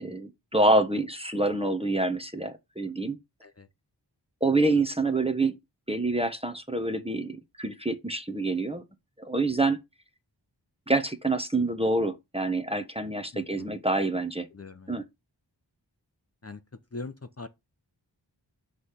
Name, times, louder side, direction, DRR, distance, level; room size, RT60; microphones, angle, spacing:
voice 1, 0.0-3.2 4.4-5.6 5.9-8.8 9.2-9.8 10.9-14.5 14.9-15.0, right 2 dB, 15° right, 0.8 m, -27 dB
voice 2, 13.3-13.7 14.5-15.0 16.4-16.6 16.9-17.5, left 3 dB, 35° left, 0.7 m, -41 dB
6.2 x 3.3 x 5.6 m
wide cardioid pair, 45°, 44 cm